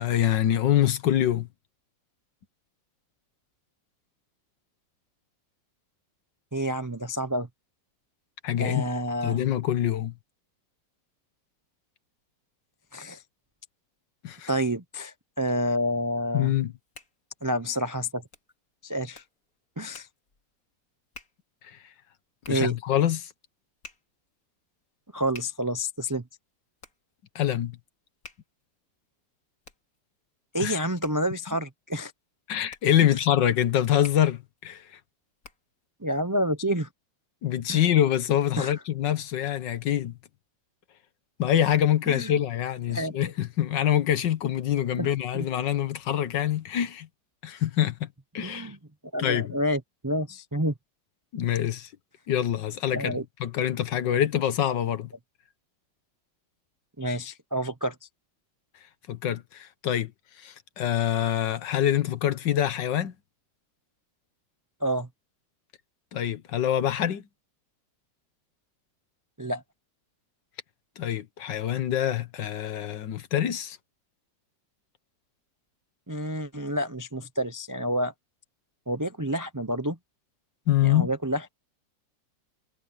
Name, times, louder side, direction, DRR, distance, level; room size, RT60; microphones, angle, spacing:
voice 1, 0.0-1.5 8.4-8.9 9.2-10.1 14.2-14.5 16.3-16.7 21.6-21.8 22.5-23.3 27.4-27.8 30.6-30.8 32.5-35.0 37.4-40.2 41.4-47.1 47.4-48.1 48.3-48.7 49.2-49.6 51.3-51.9 52.3-55.1 59.1-60.1 60.4-63.1 66.1-67.2 71.0-73.8 80.7-81.1, left 11 dB, 75° left, 1.8 m, -25 dB
voice 2, 6.5-7.5 8.6-9.4 12.9-13.2 14.5-16.5 17.4-18.2 18.8-19.2 19.8-20.1 22.5-22.8 25.1-26.2 30.5-32.1 33.0-33.1 36.0-36.9 37.7-37.8 38.6-38.7 42.1-42.3 42.9-43.2 45.0-45.5 48.4-48.8 49.1-50.7 52.9-53.2 57.0-57.9 64.8-65.1 69.4-69.6 76.1-78.1 78.9-80.0 80.8-81.5, equal, 30° right, 0.3 m, -29 dB
Hands, 16.7-35.8, left 3 dB, 50° left, 3.0 m, -53 dB
omnidirectional pair, 2.0 m